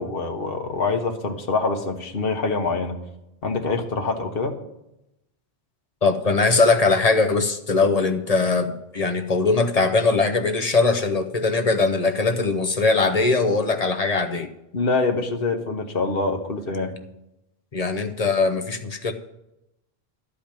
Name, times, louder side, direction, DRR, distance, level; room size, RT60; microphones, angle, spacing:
voice 1, 0.0-3.0 3.4-4.6 14.7-16.9, left 3 dB, 60° left, 4 dB, 1.4 m, -25 dB
voice 2, 6.0-14.5 17.7-19.1, left 3 dB, 40° left, 6 dB, 0.8 m, -21 dB
12.0 x 5.1 x 8.8 m, 0.88 s
omnidirectional pair, 1.1 m